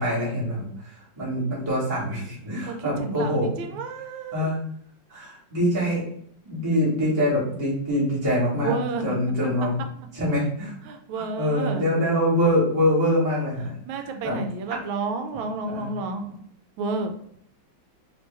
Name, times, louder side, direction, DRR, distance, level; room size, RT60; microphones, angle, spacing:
voice 1, 0.0-3.7 4.3-4.6 5.1-6.1 6.4-9.7 10.1-10.7 11.2-13.7 14.0-14.3 15.7-15.9, equal, 15° right, -8 dB, 1.3 m, -24 dB
voice 2, 2.7-4.5 8.6-9.2 10.8-11.8 13.9-16.4 16.8-17.1, right 3 dB, 80° right, 6 dB, 1.3 m, -30 dB
3.4 x 3.0 x 3.3 m, 0.65 s
omnidirectional pair, 2.2 m